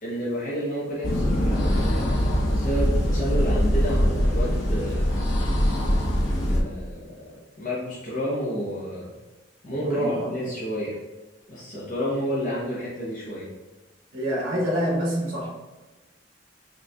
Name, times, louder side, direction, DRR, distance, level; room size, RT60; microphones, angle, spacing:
voice 1, 0.0-5.1 6.5-9.1 9.6-11.0 11.5-13.5, equal, 45° left, -6 dB, 0.8 m, -30 dB
sound 1, 1.0-6.6, equal, 75° left, 0.7 m, -22 dB
voice 2, 9.8-10.4 14.1-15.5, equal, 85° right, -5 dB, 1.0 m, -26 dB
5.0 x 3.1 x 2.3 m, 1.1 s
head